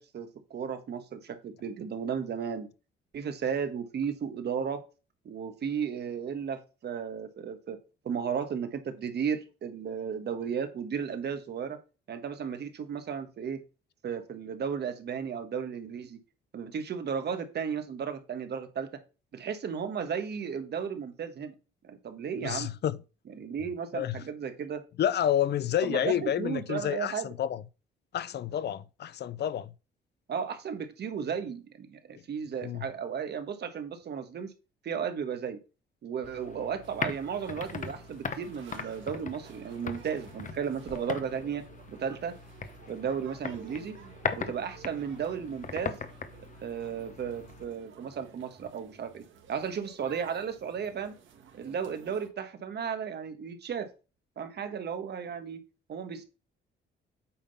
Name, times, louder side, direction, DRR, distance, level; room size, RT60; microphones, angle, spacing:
voice 1, 0.0-2.7 3.1-4.8 5.2-7.8 8.0-11.8 12.1-13.6 14.0-16.2 16.5-18.9 19.3-21.5 21.8-22.7 23.3-24.8 25.8-27.3 30.3-34.5 34.8-35.6 36.0-42.3 42.9-44.0 44.3-46.0 46.6-51.1 51.5-53.9 54.4-55.6 55.9-56.2, right 7 dB, 55° right, 1.5 m, -34 dB
voice 2, 22.4-23.0 23.9-24.2 25.0-27.6 28.1-29.7 32.6-32.9, left 10 dB, 55° left, 0.6 m, -29 dB
sound 1, 36.2-47.6, left 5 dB, 40° left, 1.1 m, -40 dB
sound 2, 36.8-52.3, right 7 dB, 75° right, 1.7 m, -52 dB
8.6 x 3.7 x 5.5 m
cardioid pair, 90°, 20 cm